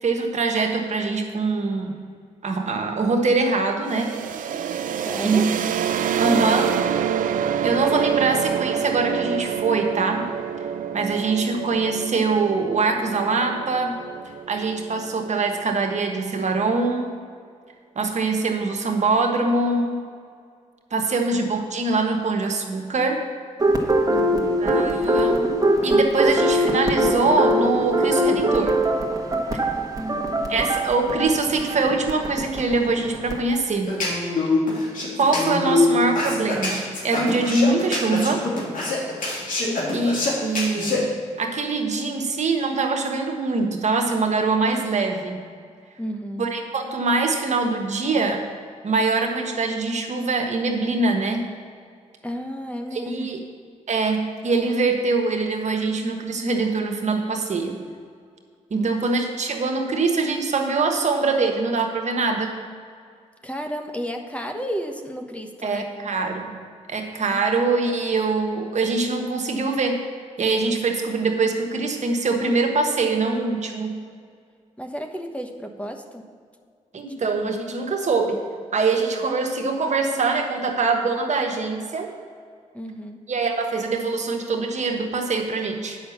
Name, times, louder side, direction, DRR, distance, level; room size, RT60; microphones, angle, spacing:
voice 1, 0.0-2.0 2.4-4.1 5.2-5.4 6.2-6.7 7.6-10.2 10.9-14.0 14.5-17.2 17.9-20.0 20.9-23.2 24.6-25.5 25.8-28.8 29.5-29.6 30.5-34.0 35.2-38.4 39.9-41.1 41.4-45.4 46.4-48.4 48.8-51.4 52.9-53.4 53.9-57.8 58.7-62.5 65.6-66.6 66.9-70.0 70.4-74.0 76.9-78.4 78.7-82.1 83.3-86.0, right 3 dB, 60° right, 3 dB, 1.3 m, -23 dB
sound 1, 3.9-15.5, right 8 dB, 75° right, 0.4 m, -27 dB
voice 2, 5.0-5.5 21.0-21.1 24.1-24.6 30.0-30.6 39.6-40.1 46.0-46.5 52.2-53.3 58.7-58.9 63.4-65.8 67.3-67.4 74.8-76.2 82.7-83.2, equal, 10° left, 4 dB, 1.1 m, -32 dB
sound 2, 23.6-33.4, right 1 dB, 25° right, 1.4 m, -22 dB
sound 3, 33.9-41.0, left 3 dB, 75° left, 2.5 m, -24 dB
8.7 x 5.8 x 7.2 m, 2.2 s
supercardioid pair, 55°, 14 cm